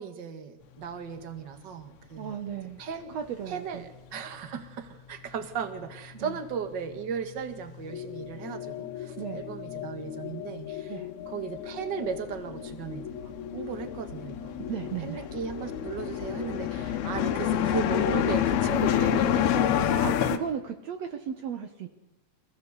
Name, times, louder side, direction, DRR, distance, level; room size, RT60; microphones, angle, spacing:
voice 1, 0.0-2.4 2.8-3.1 3.5-10.9 11.3-14.6 15.0-20.2, right 7 dB, 45° right, 7 dB, 1.6 m, -36 dB
voice 2, 2.2-2.8 3.1-3.9 6.1-6.4 9.2-9.5 10.9-11.1 14.6-15.3 20.0-21.9, right 8 dB, 80° right, 6 dB, 1.5 m, -35 dB
sound 1, 7.5-7.6 7.8-9.0 9.3-20.4, left 10 dB, 75° left, 3.2 m, -28 dB
sound 2, 7.9-19.8, left 10 dB, 55° left, 2.6 m, -40 dB
26.5 x 16.5 x 8.2 m, 1.0 s
omnidirectional pair, 4.7 m